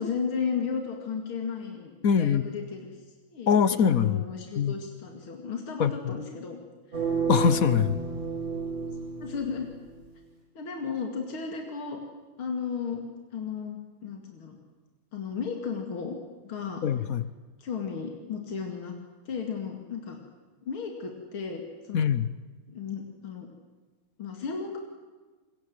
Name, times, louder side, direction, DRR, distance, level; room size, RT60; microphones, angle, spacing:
voice 1, 0.0-3.0 3.3-6.6 6.9-7.0 9.2-9.7 10.5-12.0 12.4-13.0 13.3-14.6 15.1-16.1 16.4-16.8 17.6-18.9 19.3-20.2 20.6-22.0 22.7-23.5 24.2-24.9, left 6 dB, 80° left, 3 dB, 3.2 m, -34 dB
voice 2, 2.0-2.4 3.5-4.2 4.6-4.8 5.8-6.2 7.3-8.0 16.8-17.3 21.9-22.3, left 7 dB, 55° left, 15 dB, 1.1 m, -23 dB
sound 1, 6.9-10.0, right 5 dB, 40° right, 6.6 m, -31 dB
26.5 x 23.5 x 7.9 m, 1.3 s
omnidirectional pair, 2.3 m